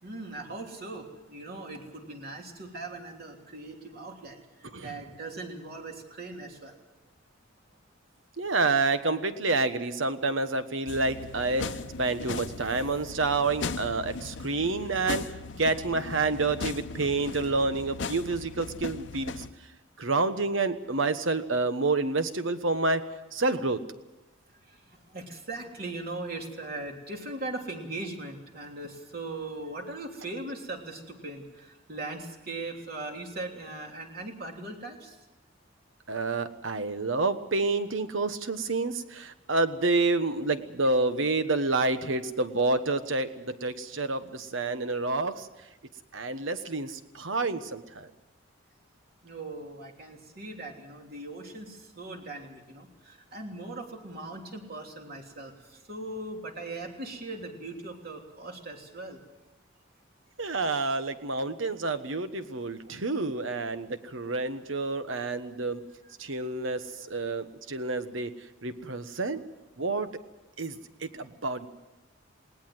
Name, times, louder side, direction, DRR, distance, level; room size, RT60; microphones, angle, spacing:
voice 1, 0.0-6.8 24.5-35.2 49.2-59.2 66.0-66.1 71.1-71.3, right 2 dB, 50° right, 2 dB, 3.2 m, -40 dB
voice 2, 8.4-19.4 20.0-23.0 23.3-23.8 36.1-45.5 46.1-48.1 60.4-65.8 66.2-68.3 68.6-69.4 69.8-70.1 70.6-71.7, right 3 dB, 90° right, 10 dB, 1.3 m, -28 dB
sound 1, 10.9-19.5, left 4 dB, 65° left, 0.8 m, -38 dB
20.0 x 18.5 x 7.9 m, 1.0 s
head